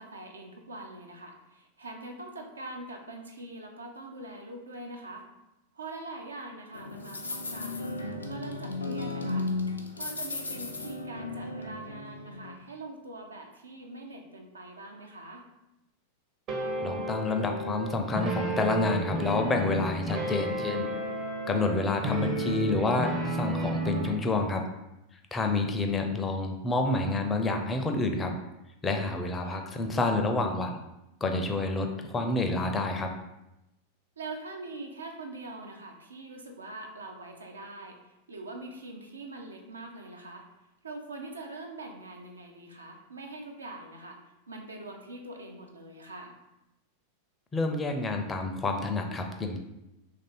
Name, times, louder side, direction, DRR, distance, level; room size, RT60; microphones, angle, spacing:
voice 1, 0.0-5.3 5.7-7.9 8.3-9.5 10.0-15.5 21.5-21.7 29.1-29.7 34.2-38.0 38.3-40.5 40.8-44.2 44.5-46.3, right 2 dB, 75° right, 3 dB, 0.5 m, -43 dB
sound 1, 6.7-12.5, left 3 dB, 80° left, 0.4 m, -35 dB
sound 2, 16.5-24.2, right 2 dB, 35° right, 0.6 m, -32 dB
voice 2, 16.8-20.9 21.5-24.6 25.3-28.3 28.8-30.8 31.2-33.1 47.5-49.6, left 3 dB, 15° left, 4 dB, 0.5 m, -28 dB
3.1 x 2.6 x 4.2 m, 0.91 s
figure-of-eight pair, 90°, 0 cm